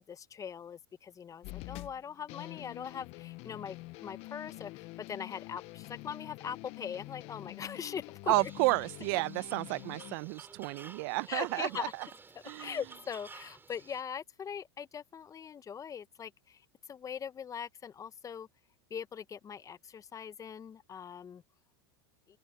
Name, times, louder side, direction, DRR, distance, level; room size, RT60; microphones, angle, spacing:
voice 1, 0.0-3.8 4.0-4.7 5.1-8.5 11.3-11.9 12.6-16.3 16.9-18.5 18.9-21.4, left 7 dB, 25° left, 1.1 m, -41 dB
sound 1, 1.4-10.2, left 22 dB, 50° left, 1.0 m, -46 dB
sound 2, 8.3-14.0, right 4 dB, 15° right, 5.0 m, -52 dB
voice 2, 8.3-11.9 12.5-12.7, right 25 dB, 60° right, 0.9 m, -31 dB
hypercardioid pair, 100°, 13 cm